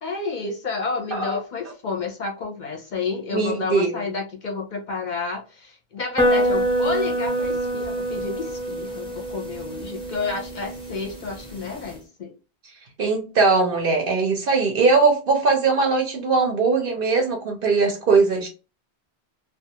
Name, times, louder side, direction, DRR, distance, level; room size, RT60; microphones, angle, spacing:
voice 1, 0.0-12.3, left 4 dB, 55° left, 0.6 m, -30 dB
voice 2, 3.3-4.1 13.0-18.5, right 4 dB, 60° right, 0.8 m, -20 dB
sound 1, 6.2-11.9, equal, 5° left, 0.6 m, -26 dB
2.3 x 2.3 x 2.8 m
omnidirectional pair, 1.1 m